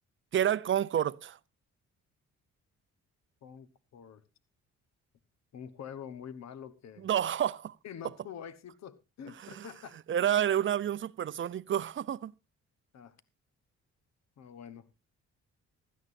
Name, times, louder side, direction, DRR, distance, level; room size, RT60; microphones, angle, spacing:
voice 1, 0.3-1.4 7.0-7.8 9.4-9.7 10.1-12.3, right 10 dB, 40° right, 0.6 m, -29 dB
voice 2, 3.4-4.2 5.5-7.1 7.8-10.3 12.9-13.1 14.4-15.0, left 8 dB, 60° left, 1.1 m, -46 dB
16.0 x 13.0 x 2.6 m
cardioid pair, 90°, 30 cm